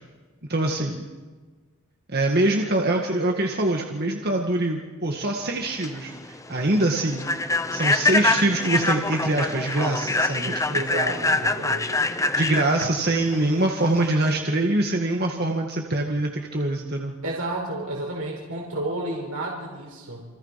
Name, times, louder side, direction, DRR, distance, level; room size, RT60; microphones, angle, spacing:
voice 1, 0.5-1.0 2.1-7.2 7.7-10.8 12.4-17.2, right 2 dB, 45° right, 1 dB, 1.9 m, -24 dB
Human voice / Train, 5.5-14.4, left 2 dB, 15° left, 0.8 m, -25 dB
voice 2, 10.7-12.0 17.2-20.3, right 2 dB, 85° right, -2 dB, 5.1 m, -31 dB
29.0 x 24.5 x 5.9 m, 1.4 s
head